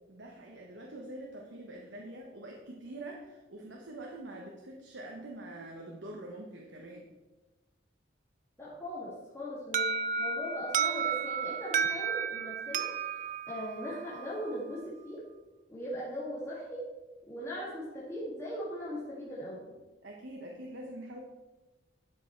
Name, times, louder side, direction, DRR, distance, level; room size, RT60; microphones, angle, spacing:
voice 1, 0.1-7.1 20.0-21.2, right 1 dB, 80° right, 0 dB, 1.1 m, -45 dB
voice 2, 8.6-15.2 15.7-16.9 17.3-19.7, equal, 15° left, -9 dB, 2.1 m, -39 dB
Alarm, 9.7-14.5, right 6 dB, 45° right, 0.4 m, -32 dB
11.5 x 5.3 x 4.5 m, 1.1 s
head